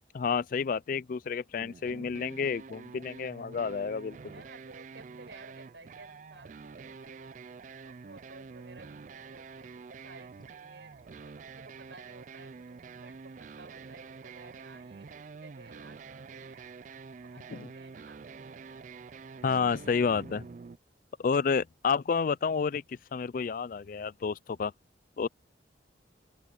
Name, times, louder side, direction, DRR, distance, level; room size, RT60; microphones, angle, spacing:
voice 1, 0.1-4.2 19.4-20.4 21.2-22.8 23.1-24.7 25.2-25.3, left 5 dB, 45° left, 0.3 m, -30 dB
sound 1, 1.6-20.8, right 4 dB, 40° right, 0.3 m, -47 dB
voice 2, 4.3-16.7 17.2-18.2 24.5-24.6, right 3 dB, 75° right, 6.6 m, -55 dB
open air
head